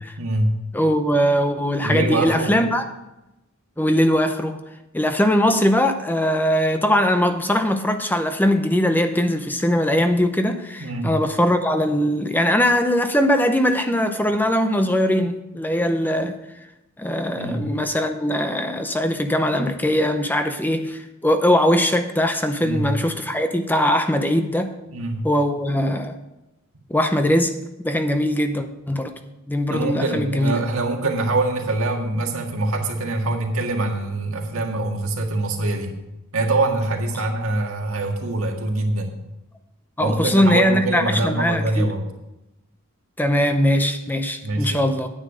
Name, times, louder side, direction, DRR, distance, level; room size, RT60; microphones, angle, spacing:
voice 1, 0.2-0.5 1.8-2.5 10.8-11.1 17.3-17.7 22.6-22.9 24.9-25.2 29.7-35.9 36.3-39.1 40.0-42.0 44.4-44.8, right 2 dB, 85° right, 2 dB, 1.8 m, -24 dB
voice 2, 0.7-2.8 3.8-4.6 4.9-16.4 17.0-24.7 25.2-26.2 26.9-27.6 27.8-29.1 29.5-30.6 40.0-41.9 43.2-45.1, equal, 10° left, 7 dB, 0.6 m, -21 dB
9.8 x 8.8 x 5.0 m, 0.95 s
head